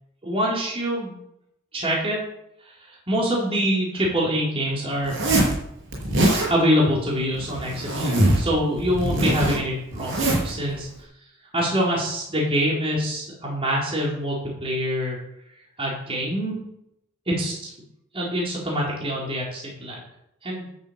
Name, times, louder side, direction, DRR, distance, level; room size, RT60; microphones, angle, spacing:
voice 1, 0.2-1.1 1.7-2.2 2.6-5.2 6.5-10.9 11.5-15.2 15.8-16.6 17.4-17.5 18.1-19.9 20.4-20.6, equal, 25° right, -5 dB, 4.2 m, -25 dB
Zipper (clothing), 5.0-5.6 5.9-6.5 7.3-8.5 8.8-10.5, right 1 dB, 60° right, 6.6 m, -22 dB
13.0 x 7.5 x 8.2 m, 0.79 s
head